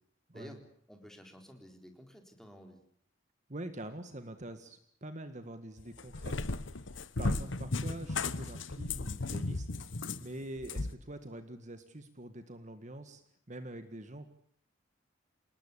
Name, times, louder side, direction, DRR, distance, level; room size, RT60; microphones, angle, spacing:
voice 1, 0.9-2.8, equal, 5° left, 3 dB, 4.0 m, -52 dB
voice 2, 3.5-9.7 10.2-13.2 13.5-14.3, right 1 dB, 40° right, 9 dB, 1.8 m, -45 dB
Cat, 5.8-10.9, left 3 dB, 75° left, 1.2 m, -35 dB
28.0 x 19.5 x 8.4 m, 0.64 s
head